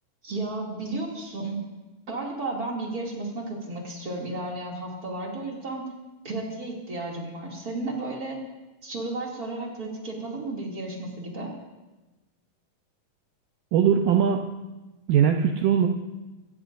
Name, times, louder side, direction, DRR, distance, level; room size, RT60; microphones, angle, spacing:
voice 1, 0.2-1.6 2.1-5.9 6.2-8.4 8.8-11.5, right 2 dB, 30° right, -2 dB, 2.3 m, -33 dB
voice 2, 13.7-14.5 15.1-15.9, right 8 dB, 80° right, 4 dB, 1.9 m, -20 dB
25.5 x 15.0 x 2.6 m, 1.1 s
omnidirectional pair, 4.6 m